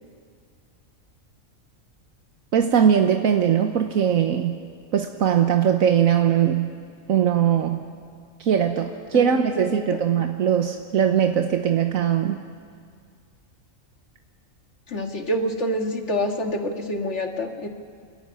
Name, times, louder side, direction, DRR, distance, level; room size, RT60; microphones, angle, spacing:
voice 1, 2.5-4.6 4.9-6.7 7.1-7.8 8.4-12.4, right 8 dB, 75° right, 5 dB, 1.4 m, -20 dB
voice 2, 14.9-17.7, equal, 55° left, 4 dB, 2.2 m, -27 dB
28.0 x 13.5 x 9.7 m, 2.1 s
omnidirectional pair, 1.4 m